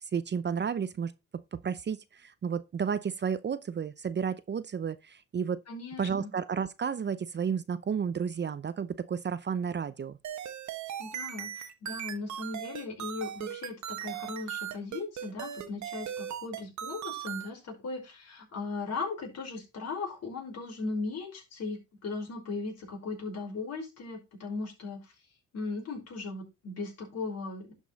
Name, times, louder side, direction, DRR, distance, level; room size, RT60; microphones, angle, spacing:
voice 1, 0.1-5.6 6.0-10.2, right 7 dB, 35° right, 0.7 m, -32 dB
voice 2, 5.7-6.3 11.0-25.0 25.5-27.7, left 3 dB, 55° left, 5.4 m, -38 dB
sound 1, 10.2-17.5, right 10 dB, 70° right, 1.3 m, -38 dB
11.5 x 5.4 x 4.1 m
cardioid pair, 90°, 30 cm